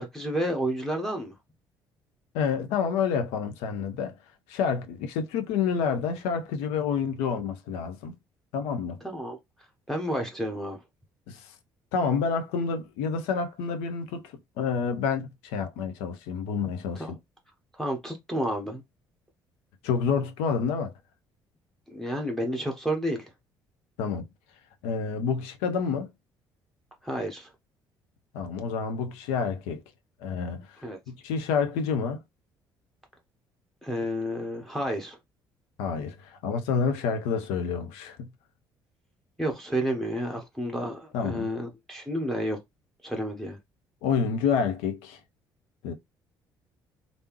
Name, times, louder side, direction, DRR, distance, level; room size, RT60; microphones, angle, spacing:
voice 1, 0.0-1.3 9.0-9.4 9.9-10.8 17.0-17.1 17.8-18.8 21.9-23.3 27.0-27.5 30.8-31.0 33.8-35.2 39.4-42.6 43.0-43.6, equal, 5° left, 1.0 m, -30 dB
voice 2, 2.3-4.2 4.5-8.1 8.5-9.0 11.3-11.5 11.9-17.1 19.8-20.9 24.0-24.3 24.8-26.1 28.3-29.8 30.2-32.2 35.8-38.3 41.1-41.5 44.0-45.2 45.8-45.9, left 6 dB, 60° left, 0.6 m, -28 dB
3.3 x 2.6 x 3.1 m
figure-of-eight pair, 50°, 12 cm